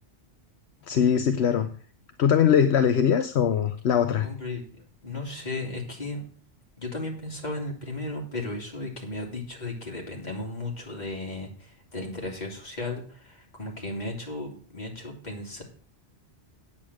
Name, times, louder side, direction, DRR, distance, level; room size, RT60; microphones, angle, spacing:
voice 1, 0.9-1.7 2.2-4.3, left 8 dB, 75° left, 8 dB, 1.0 m, -21 dB
voice 2, 4.2-6.2 6.8-15.6, left 2 dB, 40° left, 0 dB, 3.1 m, -35 dB
8.8 x 8.6 x 6.2 m, 0.43 s
omnidirectional pair, 1.1 m